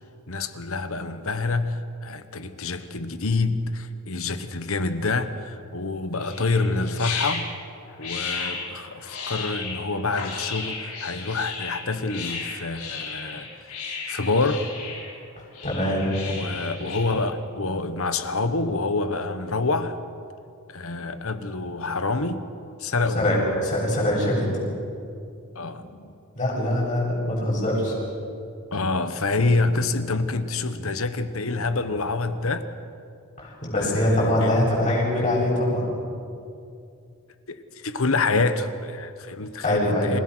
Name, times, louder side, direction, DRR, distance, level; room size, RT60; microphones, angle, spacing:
voice 1, 0.3-7.5 8.0-13.5 14.1-14.7 16.3-20.0 20.7-22.4 22.8-23.3 25.5-26.1 28.7-32.7 33.8-34.6 37.5-40.2, left 3 dB, 65° left, 10 dB, 1.2 m, -27 dB
sound 1, 6.2-17.2, left 5 dB, 90° left, 5.4 m, -34 dB
voice 2, 15.6-16.2 23.1-24.5 26.4-27.9 33.4-35.9 39.6-40.1, left 1 dB, 35° left, -4 dB, 7.8 m, -23 dB
28.0 x 17.0 x 6.3 m, 2.5 s
head